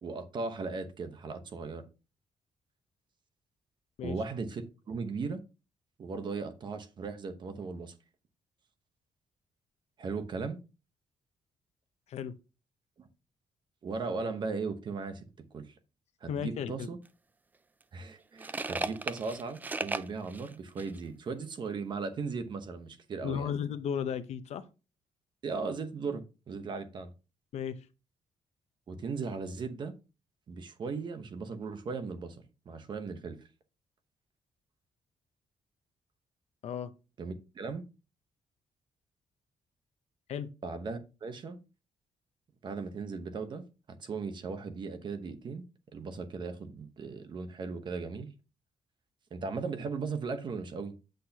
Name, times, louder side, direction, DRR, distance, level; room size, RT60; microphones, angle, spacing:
voice 1, 0.0-1.9 4.0-5.4 6.0-7.9 10.0-10.6 13.0-13.1 13.8-15.2 15.5-15.8 16.2-17.0 17.9-23.5 25.4-27.1 28.9-30.0 30.5-32.4 32.6-33.4 37.2-37.8 40.6-41.6 42.6-43.6 44.0-45.6 45.9-48.3 49.3-50.9, right 4 dB, 40° right, 1.0 m, -37 dB
voice 2, 16.3-16.9 23.2-24.7 27.5-27.9 36.6-36.9 40.3-40.5, left 8 dB, 65° left, 0.7 m, -34 dB
sound 1, 17.1-17.2 17.8-21.0, right 3 dB, 15° right, 0.3 m, -37 dB
7.9 x 6.3 x 2.8 m
wide cardioid pair, 175°, 12 cm